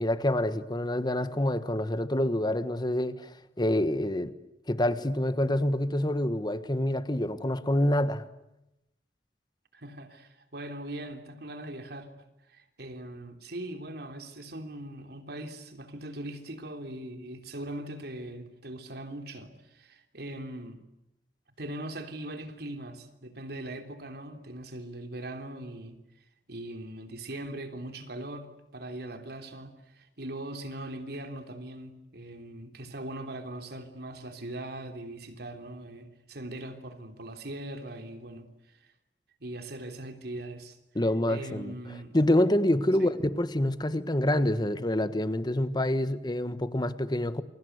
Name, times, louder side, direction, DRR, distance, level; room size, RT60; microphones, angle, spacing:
voice 1, 0.0-3.3 3.6-4.3 4.7-8.2 40.9-41.7 42.1-47.4, left 1 dB, 25° left, 1.4 m, -27 dB
voice 2, 9.7-12.1 12.5-20.8 21.6-26.0 26.5-38.8 39.4-40.8 41.3-42.2 43.0-43.1, right 1 dB, 65° right, 3.3 m, -40 dB
28.5 x 23.0 x 8.1 m
head